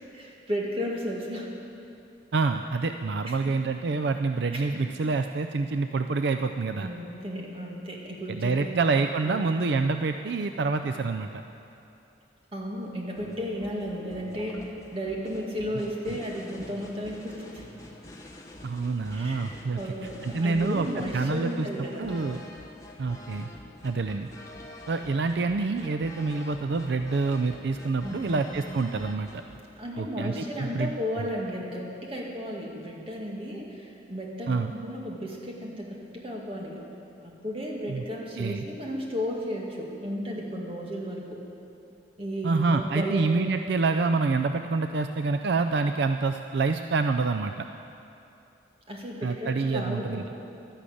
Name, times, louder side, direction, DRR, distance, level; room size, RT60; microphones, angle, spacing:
voice 1, 0.1-1.5 3.3-3.5 4.5-4.8 6.8-8.7 9.2-9.4 12.5-17.6 19.1-22.2 28.0-28.4 29.8-36.8 37.2-41.4 42.2-43.4 48.9-50.3, equal, 30° right, -2 dB, 2.1 m, -34 dB
voice 2, 2.3-6.9 8.3-11.4 16.1-16.2 18.6-19.8 20.2-20.9 21.1-22.4 23.0-23.5 23.8-24.3 24.9-29.4 30.0-30.9 34.5-34.7 37.9-38.0 38.4-38.6 42.4-47.7 49.2-50.2, right 4 dB, 65° right, 7 dB, 0.4 m, -27 dB
sound 1, 13.1-29.7, left 1 dB, 20° left, 1.1 m, -47 dB
12.0 x 11.5 x 8.5 m, 2.8 s
head